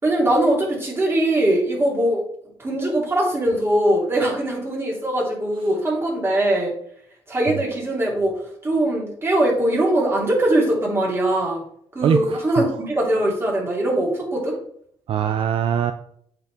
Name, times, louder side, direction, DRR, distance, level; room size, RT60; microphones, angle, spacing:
voice 1, 0.0-2.2 2.6-6.7 7.3-11.6 11.9-14.6, right 1 dB, 25° right, -3 dB, 3.2 m, -21 dB
voice 2, 12.0-12.7 15.1-15.9, right 8 dB, 60° right, 9 dB, 0.5 m, -22 dB
8.2 x 4.7 x 3.6 m, 0.66 s
cardioid pair, 75°, 10 cm